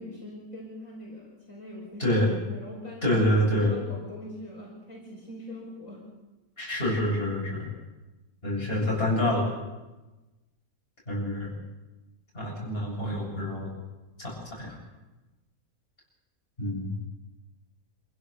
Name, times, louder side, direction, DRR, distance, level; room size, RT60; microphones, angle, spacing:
voice 1, 0.0-2.2 2.5-3.2 3.6-6.0, left 1 dB, 60° left, -3 dB, 6.2 m, -42 dB
voice 2, 2.0-2.3 3.0-3.7 6.6-7.7 8.4-9.5 11.1-11.5 12.3-13.7 14.2-14.8 16.6-16.9, left 1 dB, 40° left, -3 dB, 8.4 m, -27 dB
27.0 x 16.0 x 6.8 m, 1.1 s
omnidirectional pair, 1.5 m